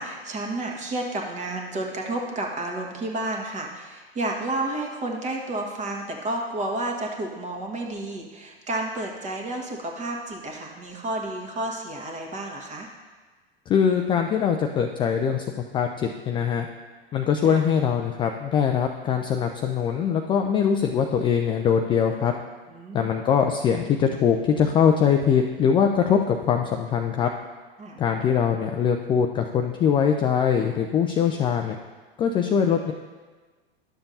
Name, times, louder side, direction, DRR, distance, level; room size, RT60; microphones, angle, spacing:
voice 1, 0.0-12.9 17.4-17.6 22.7-23.2 27.8-28.0, right 2 dB, 25° right, 1 dB, 1.3 m, -31 dB
voice 2, 13.7-15.5 15.7-16.7 17.1-22.3 22.9-27.3 28.0-31.8 32.2-32.9, left 7 dB, 20° left, 4 dB, 0.3 m, -22 dB
11.5 x 6.9 x 2.7 m, 1.3 s
figure-of-eight pair, 95°, 29 cm